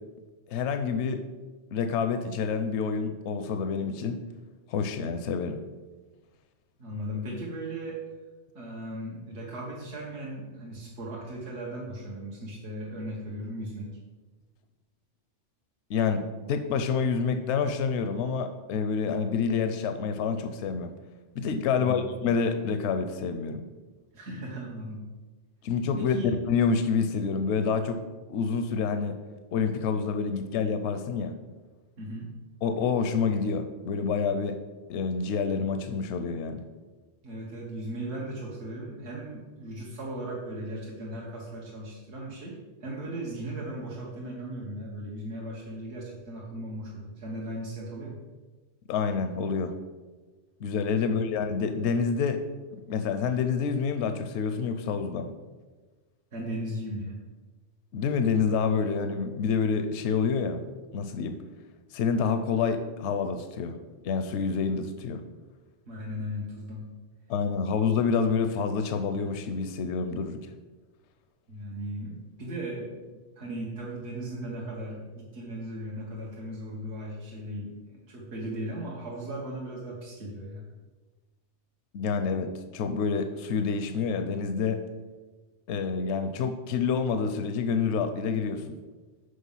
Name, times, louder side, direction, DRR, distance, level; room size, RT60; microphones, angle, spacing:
voice 1, 0.5-1.2 1.7-4.2 4.7-5.6 15.9-20.9 21.4-23.6 25.6-26.2 26.5-28.0 28.3-29.2 29.5-31.4 32.6-34.6 34.9-36.6 48.9-49.7 50.6-52.4 52.7-55.3 57.9-60.6 60.9-61.4 61.9-63.8 64.0-65.2 67.3-70.4 81.9-84.8 85.7-88.8, left 5 dB, 80° left, 8 dB, 0.9 m, -28 dB
voice 2, 6.8-8.0 8.5-13.9 21.8-22.1 24.1-25.0 26.0-26.4 32.0-32.3 37.2-48.2 51.0-51.1 56.3-57.2 65.9-66.8 71.5-80.6, right 1 dB, 75° right, -4 dB, 1.5 m, -37 dB
6.6 x 5.0 x 5.6 m, 1.3 s
omnidirectional pair, 1.2 m